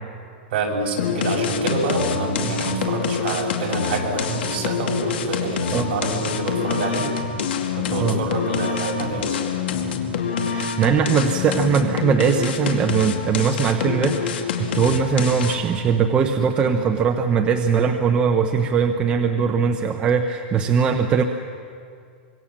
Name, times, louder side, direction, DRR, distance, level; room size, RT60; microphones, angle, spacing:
voice 1, 0.5-7.1 7.7-9.4, right 3 dB, 50° right, -1 dB, 6.3 m, -27 dB
sound 1, 1.0-15.8, left 6 dB, 75° left, 2.5 m, -26 dB
voice 2, 10.3-21.2, right 6 dB, 15° right, 4 dB, 0.8 m, -20 dB
25.5 x 24.0 x 7.4 m, 2.2 s
supercardioid pair, 170°, 6 cm